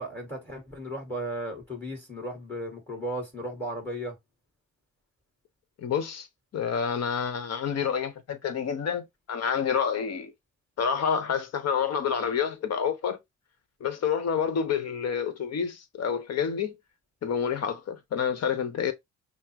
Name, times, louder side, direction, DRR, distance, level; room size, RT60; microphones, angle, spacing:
voice 1, 0.0-4.2, right 1 dB, 5° left, 1.9 m, -35 dB
voice 2, 5.8-6.3 6.5-10.3 10.8-13.2 13.8-16.8 17.2-18.9, left 7 dB, 55° left, 1.0 m, -28 dB
5.7 x 2.1 x 2.9 m
cardioid pair, 90°, 30 cm